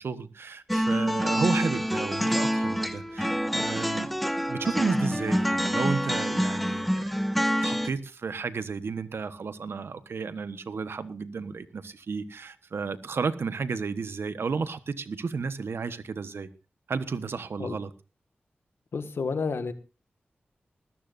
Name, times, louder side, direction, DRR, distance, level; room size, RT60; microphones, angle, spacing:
voice 1, 0.0-4.2 4.5-16.5 16.9-17.9, right 5 dB, 80° right, 12 dB, 1.1 m, -32 dB
sound 1, 0.7-7.9, equal, ahead, 1.1 m, -27 dB
voice 2, 18.9-19.7, left 4 dB, 75° left, 9 dB, 1.6 m, -30 dB
20.0 x 14.0 x 2.6 m, 0.31 s
cardioid pair, 50°, 4 cm